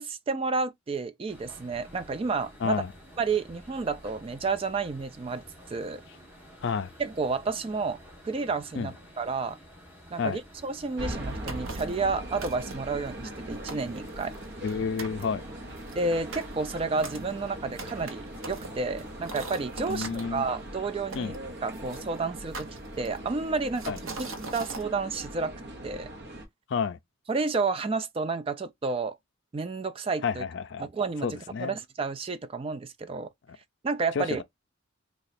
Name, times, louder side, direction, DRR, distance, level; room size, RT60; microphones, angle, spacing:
voice 1, 0.0-2.8 3.2-5.4 5.7-6.0 7.0-8.0 8.2-9.6 10.1-14.3 15.9-22.7 23.0-23.9 24.5-25.5 25.8-26.1 27.3-29.2 29.5-30.4 30.8-31.3 31.6-33.3 33.8-34.4, right 4 dB, 25° right, 0.3 m, -31 dB
sound 1, 1.3-19.7, equal, 10° right, 1.1 m, -51 dB
voice 2, 2.6-2.9 6.6-6.9 8.8-8.9 10.2-10.4 14.6-15.4 19.9-20.4 21.1-21.3 23.9-24.0 26.7-27.0 30.2-30.9 31.2-31.8 34.1-34.2, left 5 dB, 60° left, 0.4 m, -30 dB
sound 2, 11.0-26.4, right 1 dB, 55° right, 0.9 m, -40 dB
sound 3, 11.5-12.0 12.4-13.0 13.4-13.5 13.7-14.7 15.0-15.2 15.8-20.2 21.1-22.0 22.5-23.3 23.8-24.9, right 3 dB, 80° right, 0.8 m, -41 dB
3.0 x 2.3 x 4.1 m
head